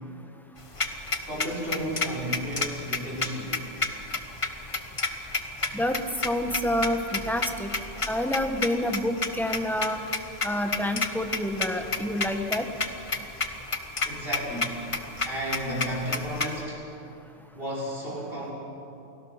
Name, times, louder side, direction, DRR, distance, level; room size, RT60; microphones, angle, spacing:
sound 1, 0.6-16.6, left 3 dB, 25° left, 1.2 m, -30 dB
voice 1, 1.3-3.5 14.1-14.8 15.2-16.8 17.6-18.5, equal, 50° right, -4 dB, 5.5 m, -33 dB
voice 2, 6.2-7.7 8.1-10.0 10.4-12.7, left 1 dB, ahead, 5 dB, 1.4 m, -28 dB
29.0 x 18.5 x 5.9 m, 2.8 s
omnidirectional pair, 1.2 m